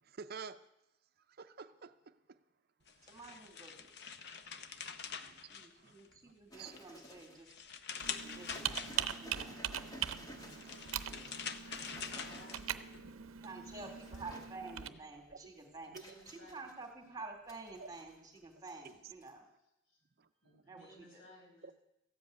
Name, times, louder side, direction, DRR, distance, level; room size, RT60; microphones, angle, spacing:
voice 1, 0.0-0.7 1.2-2.4 2.9-3.2 4.4-6.0 6.2-6.8 8.1-8.5 9.3-9.7 10.2-12.5 13.0-13.1 13.8-13.9 14.9-15.0 15.3-15.4 15.9-16.0 17.8-17.9 19.0-19.1 20.2-20.6 21.6-21.7, right 5 dB, 50° right, 0.6 m, -53 dB
sound 1, 2.9-6.2 6.6-9.4 10.3-13.0, left 6 dB, 55° left, 0.8 m, -45 dB
voice 2, 3.0-4.0 5.0-7.5 8.1-8.9 9.2-9.6 13.4-15.9 16.3-19.5 20.7-20.8 21.1-21.2, right 3 dB, 15° right, 2.1 m, -50 dB
sound 2, 6.5-7.5 8.0-13.0 13.6-14.5 15.0-17.0 17.5-18.4 18.7-18.9 19.2-19.3, equal, 20° left, 1.3 m, -54 dB
Computer keyboard, 8.0-14.9, right 10 dB, 90° right, 0.7 m, -42 dB
voice 3, 11.8-14.3 14.7-15.1 15.6-17.2 19.8-20.0 20.4-21.7, equal, 75° left, 5.8 m, -60 dB
14.5 x 7.8 x 9.3 m
head